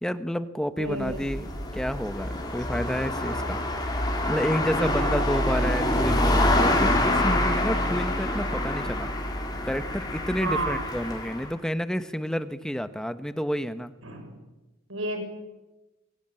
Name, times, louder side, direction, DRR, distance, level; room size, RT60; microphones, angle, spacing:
voice 1, 0.0-1.5 1.7-3.6 4.3-9.1 9.6-13.9, equal, 5° left, 11 dB, 1.1 m, -29 dB
sound 1, 0.8-11.5, left 1 dB, 20° left, 4.4 m, -26 dB
voice 2, 0.8-1.2 4.8-5.3 10.4-10.8 14.0-14.3 14.9-15.2, right 2 dB, 70° right, 5 dB, 6.6 m, -31 dB
27.5 x 23.5 x 9.0 m, 1.0 s
head